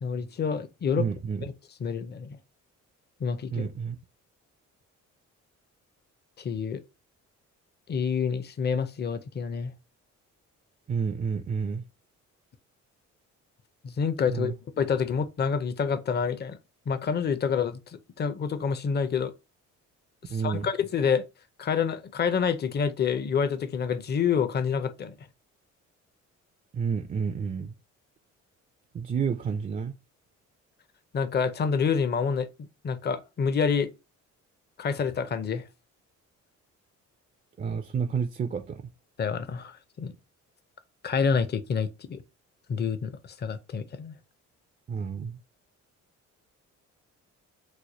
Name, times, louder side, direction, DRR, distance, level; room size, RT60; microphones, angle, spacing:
voice 1, 0.0-1.1 1.4-1.5 1.8-2.4 3.2-3.7 6.4-6.8 7.9-9.7 13.8-16.6 16.9-19.3 20.4-21.2 21.6-25.1 31.1-33.9 34.8-35.6 39.2-40.1 41.0-42.2 42.7-44.2, left 6 dB, 35° left, 0.5 m, -28 dB
voice 2, 1.0-1.5 3.5-4.0 10.9-11.8 14.3-14.5 20.3-20.7 26.7-27.7 28.9-29.9 37.6-38.8 44.9-45.4, right 6 dB, 30° right, 0.3 m, -30 dB
3.1 x 2.1 x 4.0 m
cardioid pair, 90°, 30 cm